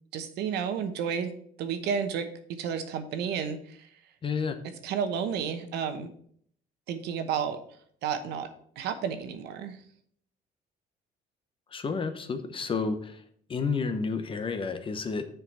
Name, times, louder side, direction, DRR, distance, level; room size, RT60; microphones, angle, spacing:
voice 1, 0.1-1.3 1.6-3.8 4.8-6.1 6.9-7.6 8.0-8.5 8.8-9.8, right 7 dB, 80° right, 9 dB, 1.0 m, -31 dB
voice 2, 4.2-4.6 11.7-13.2 13.5-15.3, left 5 dB, 30° left, 9 dB, 0.8 m, -30 dB
6.5 x 4.7 x 5.9 m, 0.62 s
cardioid pair, 110°, 17 cm